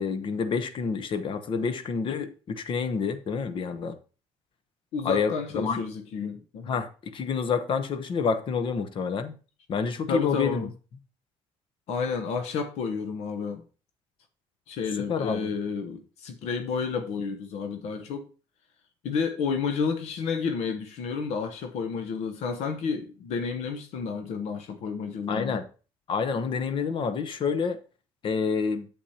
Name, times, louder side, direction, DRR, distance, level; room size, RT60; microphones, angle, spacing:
voice 1, 0.0-4.0 5.0-5.8 6.7-9.4 9.7-10.6 15.1-15.5 25.3-25.7 26.1-27.8 28.2-28.9, left 5 dB, 45° left, 0.9 m, -28 dB
voice 2, 4.9-6.7 10.1-10.7 11.9-13.6 14.7-18.3 19.0-25.6, left 5 dB, 70° left, 0.9 m, -31 dB
8.5 x 7.1 x 2.8 m
cardioid pair, 110°, 12 cm